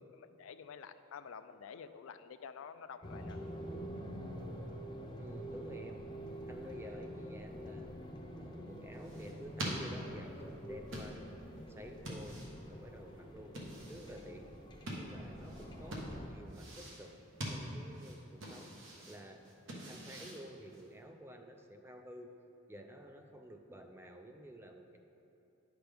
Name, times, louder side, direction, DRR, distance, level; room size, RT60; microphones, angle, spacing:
voice 1, 0.0-3.4, left 6 dB, 75° left, 11 dB, 0.4 m, -50 dB
sound 1, 3.0-16.3, equal, 20° left, 0.7 m, -47 dB
voice 2, 5.2-6.0 6.5-7.9 8.4-11.2 11.7-12.4 12.7-13.6 13.9-14.5 15.0-17.2 17.5-18.7 19.1-19.4 19.9-22.3 22.7-25.0, equal, 10° right, 5 dB, 0.4 m, -51 dB
sound 2, 8.7-21.0, equal, 70° right, 1.3 m, -46 dB
10.0 x 6.0 x 3.4 m, 2.9 s
head